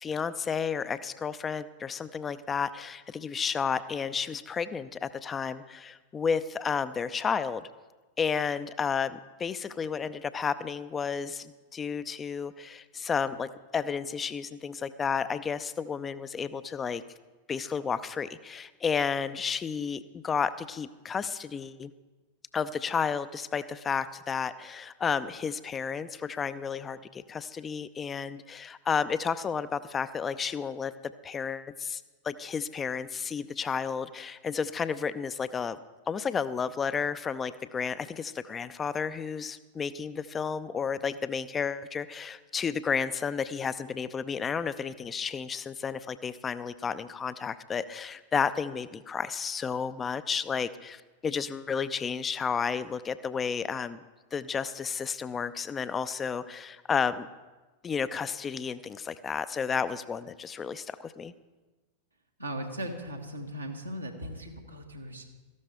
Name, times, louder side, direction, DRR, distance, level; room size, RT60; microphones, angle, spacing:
voice 1, 0.0-7.7 8.2-17.0 17.5-21.9 22.5-35.8 36.1-54.0 54.3-57.3 57.8-61.3, left 6 dB, 20° left, 14 dB, 0.5 m, -32 dB
voice 2, 62.4-65.2, equal, 85° right, 0 dB, 1.7 m, -38 dB
17.5 x 14.0 x 3.4 m, 1.2 s
figure-of-eight pair, 90°, 0 cm